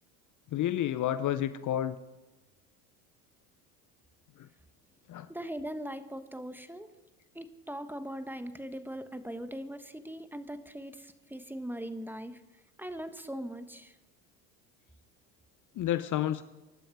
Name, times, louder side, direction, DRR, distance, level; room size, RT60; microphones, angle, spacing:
voice 1, 0.5-2.0 4.4-4.5 5.1-5.3 15.8-16.4, left 11 dB, 40° left, 13 dB, 0.7 m, -30 dB
voice 2, 5.3-6.9 7.3-12.4 12.8-13.9, equal, 5° right, 10 dB, 1.2 m, -40 dB
24.0 x 12.0 x 4.8 m, 1.1 s
hypercardioid pair, 85°, 47 cm